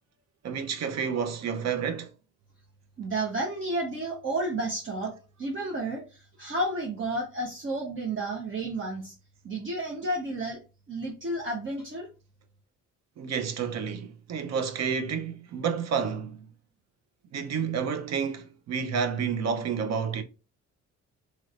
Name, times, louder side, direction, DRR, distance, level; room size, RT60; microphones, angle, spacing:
voice 1, 0.4-2.1 13.2-16.5 17.3-20.2, right 6 dB, 60° right, 0.7 m, -30 dB
voice 2, 3.0-5.1 5.4-9.1 9.4-10.6 10.9-12.1, right 2 dB, 40° right, 1.0 m, -31 dB
3.1 x 3.1 x 2.4 m
cardioid pair, 90°, 30 cm